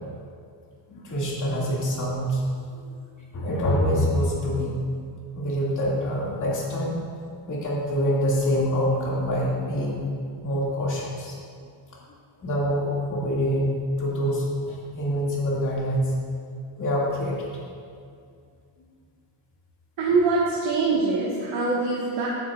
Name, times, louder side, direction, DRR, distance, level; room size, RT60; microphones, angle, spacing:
voice 1, 0.9-2.5 2.9-3.0 3.3-4.8 5.3-7.0 7.5-10.1 10.4-11.4 12.4-16.1 16.8-17.5, equal, 40° left, -5 dB, 2.4 m, -25 dB
voice 2, 20.0-22.3, right 3 dB, 70° right, -6 dB, 1.7 m, -23 dB
15.0 x 9.8 x 2.5 m, 2.3 s
cardioid pair, 175°, 46 cm